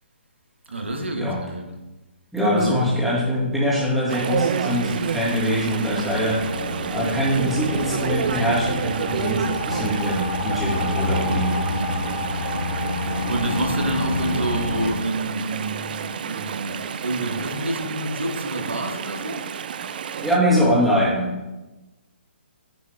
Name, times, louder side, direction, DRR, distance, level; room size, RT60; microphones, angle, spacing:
voice 1, 0.7-1.7 2.4-3.0 11.6-12.2 13.0-19.5, right 1 dB, 85° right, 1.2 m, -28 dB
voice 2, 2.3-6.4 6.9-11.6 20.2-21.3, equal, ahead, 1.9 m, -23 dB
Chatter / Stream, 4.1-20.4, right 7 dB, 50° right, 0.4 m, -30 dB
sound 1, 4.5-14.9, left 2 dB, 75° left, 1.5 m, -29 dB
10.0 x 3.5 x 3.4 m
hypercardioid pair, 145°, 6 cm